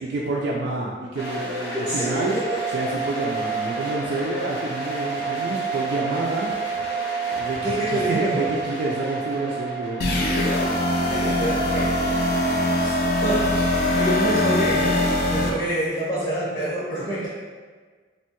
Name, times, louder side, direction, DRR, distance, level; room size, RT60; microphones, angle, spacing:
voice 1, 0.0-2.4 2.7-6.5 7.3-10.4, right 2 dB, 75° right, -4 dB, 0.3 m, -28 dB
sound 1, 1.2-14.0, right 4 dB, 80° left, 0.7 m, -30 dB
voice 2, 1.7-2.4 7.6-8.5 11.1-12.0 12.7-17.3, right 1 dB, 15° left, -10 dB, 0.6 m, -27 dB
sound 2, 10.0-15.5, left 1 dB, 55° left, 0.4 m, -22 dB
2.8 x 2.2 x 2.8 m, 1.5 s
head